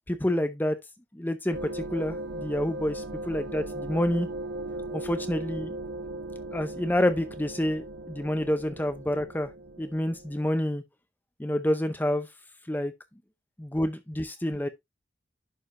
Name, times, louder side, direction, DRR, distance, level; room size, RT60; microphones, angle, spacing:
voice 1, 0.1-0.8 1.1-4.3 4.9-5.7 6.5-9.5 9.8-10.8 11.4-12.3 12.7-12.9 13.6-14.7, left 1 dB, 10° left, 0.6 m, -28 dB
sound 1, 1.5-10.6, right 1 dB, 80° right, 1.1 m, -38 dB
11.0 x 5.0 x 2.6 m
head